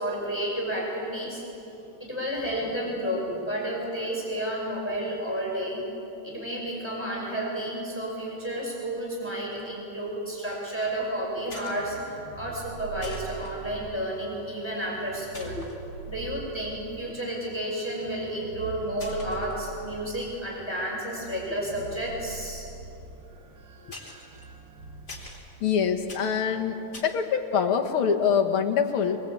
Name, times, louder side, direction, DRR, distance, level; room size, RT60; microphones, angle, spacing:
voice 1, 0.0-1.4 2.0-5.9 6.2-15.6 16.1-22.7, right 1 dB, 10° left, -3 dB, 5.6 m, -31 dB
sound 1, 9.5-9.8 10.0-10.4 11.5-12.3 12.5-12.6 13.0-13.5 14.6-14.9 15.3-15.8 16.4-16.5 17.8-18.3 18.9-20.2 20.5-20.9 21.4-23.4 23.9-27.2, left 2 dB, 35° left, 4.1 m, -46 dB
sound 2, 10.8-25.3, right 4 dB, 75° right, 2.3 m, -44 dB
voice 2, 25.6-29.2, left 7 dB, 80° left, 3 dB, 2.4 m, -25 dB
23.5 x 23.0 x 8.6 m, 2.9 s
omnidirectional pair, 2.3 m